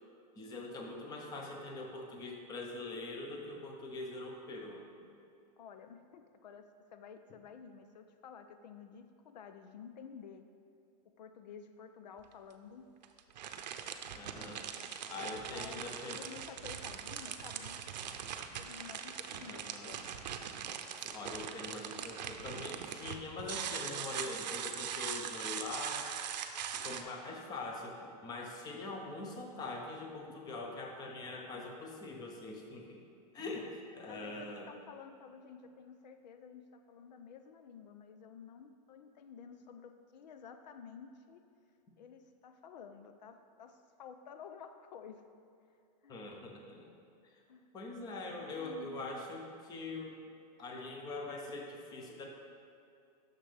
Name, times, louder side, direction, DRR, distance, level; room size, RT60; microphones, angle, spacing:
voice 1, 0.4-4.8 14.1-16.2 19.5-20.0 21.0-26.1 26.7-33.0 33.3-33.7 33.9-34.7 46.1-46.9 47.3-47.4 47.7-50.2 50.6-52.3, left 2 dB, 20° left, 1 dB, 0.8 m, -43 dB
voice 2, 5.6-10.5 11.2-12.9 15.2-17.9 18.5-20.1 20.4-20.5 33.6-41.4 42.0-45.3 46.0-46.3 47.5-47.7 48.6-49.2, left 6 dB, 85° left, 8 dB, 0.6 m, -52 dB
sound 1, 12.2-12.3 13.0-27.0, right 8 dB, 85° right, 0.7 m, -41 dB
9.8 x 6.6 x 3.4 m, 2.6 s
supercardioid pair, 160°, 21 cm